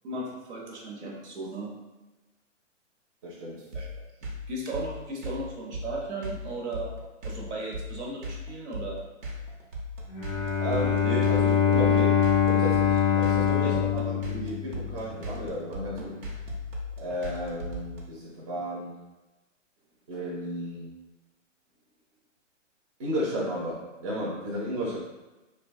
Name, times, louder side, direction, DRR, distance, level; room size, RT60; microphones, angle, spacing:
voice 1, 0.0-1.7 3.7-4.1 4.5-6.9 7.2-9.0 13.6-13.7, right 2 dB, 65° right, -1 dB, 0.7 m, -36 dB
voice 2, 3.2-3.6 4.2-4.3 10.6-16.3 17.0-19.0 20.1-20.9 23.0-25.0, equal, 25° right, -6 dB, 0.6 m, -33 dB
sound 1, 3.7-18.0, left 1 dB, 90° right, 0.9 m, -37 dB
Bowed string instrument, 10.1-15.1, left 8 dB, 25° left, 0.4 m, -24 dB
2.7 x 2.2 x 2.5 m, 1.1 s
hypercardioid pair, 145°, 38 cm